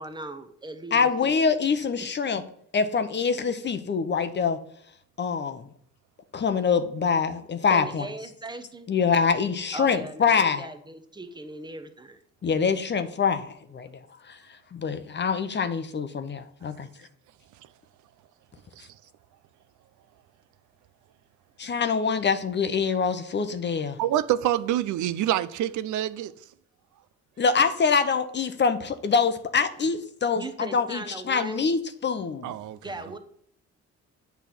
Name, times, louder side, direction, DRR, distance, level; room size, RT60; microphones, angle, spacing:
voice 1, 0.0-1.4 2.4-2.5 7.7-8.9 9.7-12.2 30.3-31.7 32.8-33.2, right 2 dB, 15° right, 0.9 m, -39 dB
voice 2, 0.9-2.4 2.7-4.6 5.2-5.7 6.3-8.0 8.9-10.7 12.4-13.9 14.3-14.4 14.7-16.9 21.6-24.0 27.4-32.5, left 5 dB, 35° left, 0.7 m, -25 dB
voice 3, 24.0-26.3 32.4-32.8, right 12 dB, 75° right, 0.5 m, -26 dB
8.2 x 3.5 x 6.0 m
cardioid pair, 90°, 30 cm